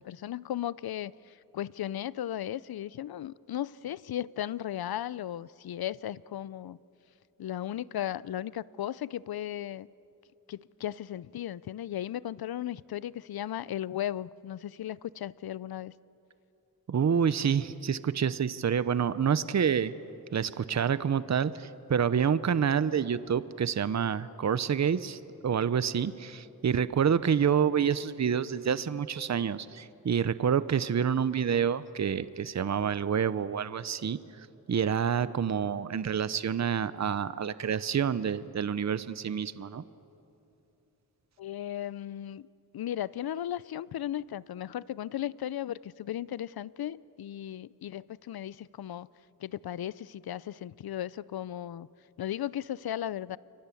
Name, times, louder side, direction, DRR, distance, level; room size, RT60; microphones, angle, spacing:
voice 1, 0.0-6.8 7.4-9.9 10.5-15.9 41.4-42.5 42.7-49.1 49.4-51.9 52.2-53.4, left 11 dB, 85° left, 20 dB, 0.6 m, -36 dB
voice 2, 16.9-19.9 20.3-39.8, right 7 dB, 50° right, 15 dB, 0.8 m, -28 dB
29.5 x 23.5 x 8.4 m, 2.8 s
wide cardioid pair, 110°, 36 cm